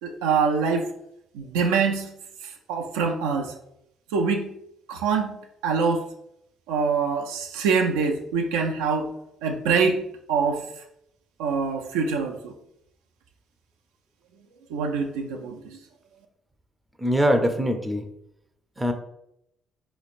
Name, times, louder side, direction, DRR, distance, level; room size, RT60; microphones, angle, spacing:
voice 1, 0.0-0.9 1.3-2.1 2.4-3.5 4.1-4.5 4.9-5.3 5.6-6.0 6.7-9.1 9.4-10.0 10.3-10.6 11.4-12.5 14.7-15.8, right 5 dB, 85° right, 2 dB, 0.3 m, -24 dB
voice 2, 17.0-18.0 18.8-18.9, equal, 15° right, 6 dB, 0.5 m, -22 dB
4.1 x 2.9 x 2.5 m, 0.78 s
hypercardioid pair, 60°, 0 cm